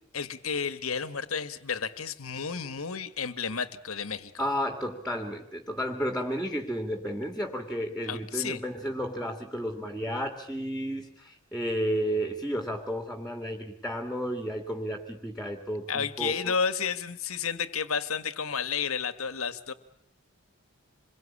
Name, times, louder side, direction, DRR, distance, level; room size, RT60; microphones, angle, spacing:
voice 1, 0.1-4.4 8.1-8.6 15.9-19.7, left 6 dB, 75° left, 13 dB, 1.6 m, -31 dB
voice 2, 4.4-16.5, equal, ahead, 5 dB, 2.2 m, -32 dB
27.0 x 22.5 x 8.6 m, 0.69 s
head